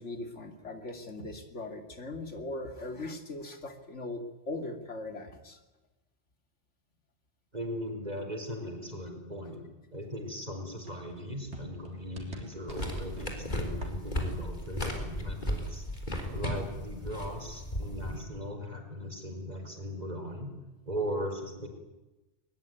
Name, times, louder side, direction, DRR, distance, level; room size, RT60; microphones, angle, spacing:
voice 1, 0.0-5.6, left 2 dB, 90° left, 6 dB, 2.9 m, -39 dB
voice 2, 7.5-9.7 9.9-15.8 16.3-20.5 20.9-21.7, equal, 35° right, 4 dB, 4.6 m, -38 dB
sound 1, 10.8-16.4 16.6-18.2, right 1 dB, 70° right, 4.2 m, -48 dB
sound 2, 12.7-18.2, left 1 dB, 40° left, 4.2 m, -35 dB
21.5 x 21.5 x 9.3 m, 1.1 s
omnidirectional pair, 1.2 m